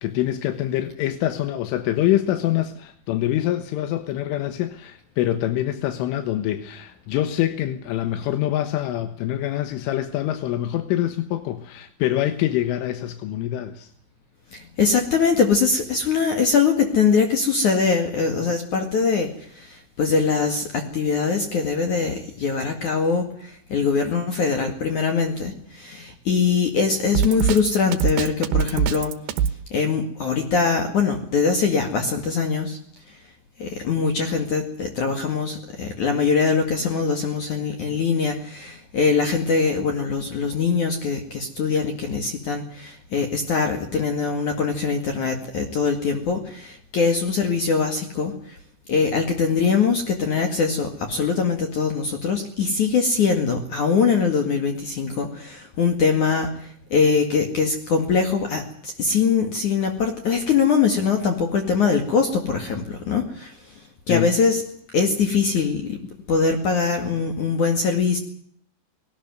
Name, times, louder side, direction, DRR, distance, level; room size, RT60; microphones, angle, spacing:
voice 1, 0.0-13.9 64.1-64.3, left 13 dB, 85° left, 9 dB, 3.9 m, -25 dB
voice 2, 14.5-29.1 29.7-32.8 33.6-48.6 48.9-63.6 64.1-64.6 64.9-66.0 66.3-68.2, left 5 dB, 50° left, 5 dB, 2.9 m, -22 dB
Drum kit, 27.1-29.6, right 8 dB, 65° right, 2.9 m, -22 dB
20.0 x 18.5 x 9.3 m, 0.63 s
omnidirectional pair, 5.5 m